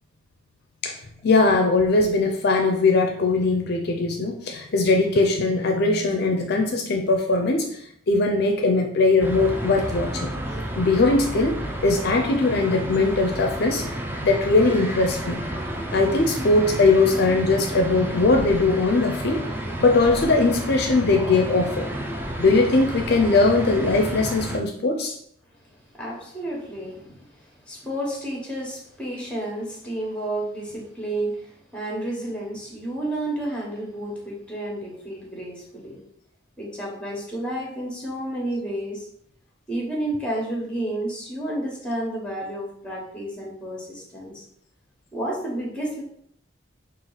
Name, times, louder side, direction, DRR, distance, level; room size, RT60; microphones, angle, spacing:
voice 1, 1.2-7.8 8.1-10.3 10.8-11.5 11.8-13.8 14.2-15.4 15.9-19.4 19.8-21.9 22.4-25.2, left 3 dB, 55° left, 3 dB, 0.5 m, -20 dB
sound 1, 9.2-24.6, right 1 dB, 10° right, 0.4 m, -31 dB
voice 2, 25.6-36.0 36.6-39.1 39.7-44.4 45.1-46.0, right 1 dB, 5° left, -2 dB, 1.2 m, -31 dB
4.4 x 2.5 x 3.9 m, 0.67 s
head